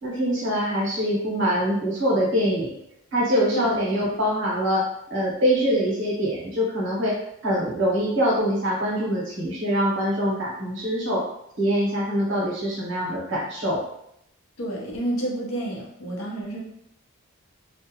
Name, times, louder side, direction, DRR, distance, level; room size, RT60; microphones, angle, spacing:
voice 1, 0.0-2.8 3.1-11.3 11.6-13.8, equal, 60° right, -4 dB, 0.8 m, -24 dB
voice 2, 3.5-4.1 14.6-16.6, right 1 dB, 80° left, -2 dB, 0.8 m, -30 dB
2.3 x 2.1 x 2.9 m, 0.75 s
head